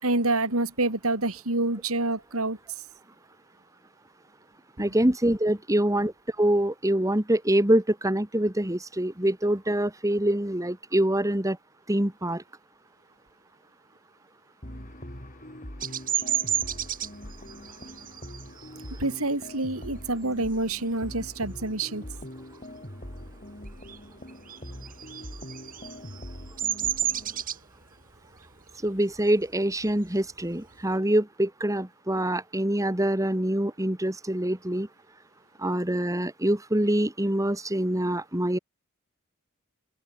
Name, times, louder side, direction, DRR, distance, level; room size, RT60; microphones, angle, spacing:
voice 1, 0.0-2.6 4.8-5.1 19.0-22.0, right 2 dB, 75° right, 4.5 m, -27 dB
voice 2, 4.8-11.6 11.9-12.4 28.8-34.9 35.6-38.6, right 1 dB, 15° right, 1.9 m, -25 dB
sound 1, 14.6-27.4, left 1 dB, 35° left, 5.9 m, -43 dB
Bird vocalization bird call bird song, 15.8-21.0 21.4-21.8 22.1-23.3 23.6-30.9, right 10 dB, 40° right, 6.6 m, -32 dB
open air
head